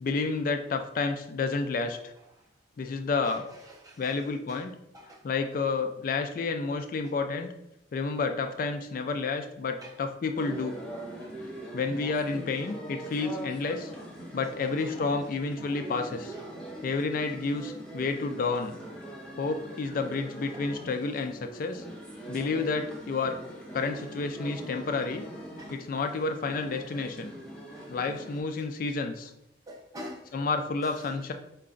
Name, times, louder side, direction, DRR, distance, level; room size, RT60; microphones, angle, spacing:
voice 1, 0.0-2.1 2.8-3.5 4.0-4.7 5.2-7.5 7.9-10.8 11.7-13.9 14.3-16.3 16.8-18.7 19.4-21.8 22.3-23.4 23.7-25.3 25.7-27.3 27.9-29.3 30.3-31.3, left 4 dB, 50° left, 6 dB, 0.3 m, -30 dB
voice 2, 3.2-4.2 4.5-4.6 4.9-5.2 9.8-10.0 11.2-11.3 12.7-12.8 13.0-13.3 14.8-15.0 15.2-15.3 15.9-16.0 16.3-16.5 20.5-20.6 25.6-25.8 26.9-27.4 27.7-27.9 29.7-30.3 30.8-31.1, equal, 20° right, 0 dB, 0.7 m, -47 dB
sound 1, 10.3-28.4, right 1 dB, 5° left, 0.9 m, -42 dB
4.7 x 2.2 x 3.7 m, 0.83 s
head